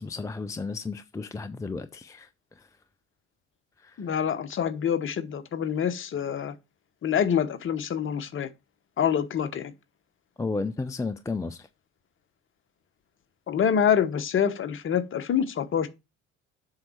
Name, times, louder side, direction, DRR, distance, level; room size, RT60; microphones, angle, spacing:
voice 1, 0.0-2.3 2.6-2.7 3.8-4.0 10.4-11.7, left 3 dB, 10° left, 0.5 m, -33 dB
voice 2, 4.0-6.5 7.0-8.5 9.0-9.7 13.5-15.9, left 8 dB, 35° left, 1.1 m, -26 dB
7.7 x 5.6 x 4.4 m
figure-of-eight pair, 55°, 37 cm